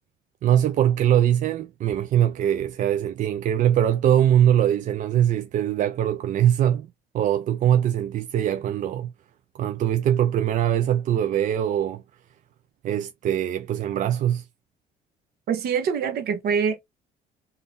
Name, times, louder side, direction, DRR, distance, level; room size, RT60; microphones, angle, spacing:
voice 1, 0.4-6.9 7.1-9.1 9.6-12.0 12.8-14.5, right 10 dB, 50° right, 0.4 m, -22 dB
voice 2, 15.5-16.8, right 6 dB, 70° right, 0.9 m, -24 dB
3.6 x 2.7 x 2.6 m
cardioid pair, 110°, 17 cm